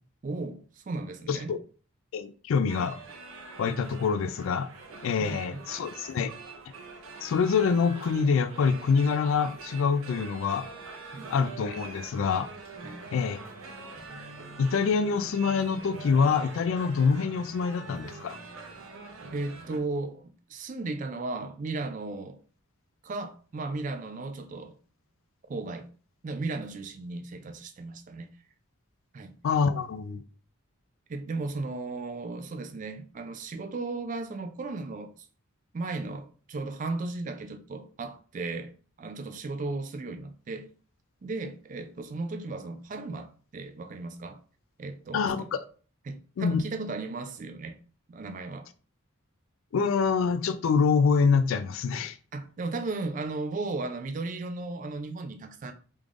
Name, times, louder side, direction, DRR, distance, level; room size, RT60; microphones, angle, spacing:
voice 1, 0.2-1.5 5.2-5.6 11.1-11.3 12.8-13.0 19.3-22.4 23.0-24.8 25.5-25.9 26.2-28.3 29.1-29.4 31.1-35.3 35.7-38.7 39.0-40.7 41.2-44.4 44.8-45.5 46.1-47.8 48.1-48.7 52.3-55.7, right 3 dB, 35° right, 0.3 m, -35 dB
voice 2, 2.1-3.0 3.6-4.7 5.0-6.3 7.2-10.7 11.3-12.5 13.1-13.4 14.6-18.4 29.4-30.2 45.1-45.6 46.4-46.6 49.7-52.2, left 5 dB, 70° left, 0.3 m, -25 dB
sound 1, 2.7-19.8, right 3 dB, 70° right, 0.7 m, -44 dB
3.5 x 3.2 x 2.4 m
head